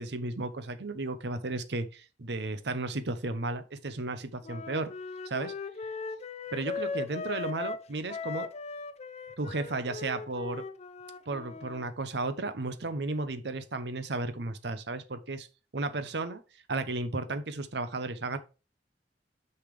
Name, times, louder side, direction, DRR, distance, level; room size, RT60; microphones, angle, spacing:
voice 1, 0.0-4.9 5.2-5.5 6.5-8.5 9.4-10.6 11.3-15.5 15.7-16.4 16.7-18.4, right 2 dB, 70° right, 0.8 m, -34 dB
Wind instrument woodwind instrument, 4.4-11.9, left 4 dB, 35° left, 0.5 m, -38 dB
6.8 x 5.7 x 3.3 m
head